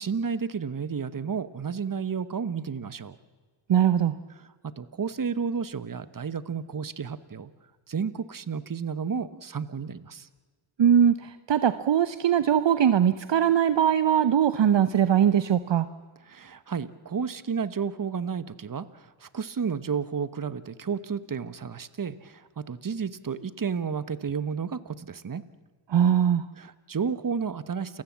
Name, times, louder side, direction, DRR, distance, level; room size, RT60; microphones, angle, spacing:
voice 1, 0.0-3.2 4.6-7.5 7.9-10.3 16.3-25.4 26.6-28.0, right 6 dB, 40° right, 15 dB, 1.2 m, -32 dB
voice 2, 3.7-4.2 10.8-15.9 25.9-26.4, right 9 dB, 60° right, 13 dB, 0.8 m, -21 dB
29.0 x 15.5 x 7.4 m, 1.4 s
cardioid pair, 60°, 50 cm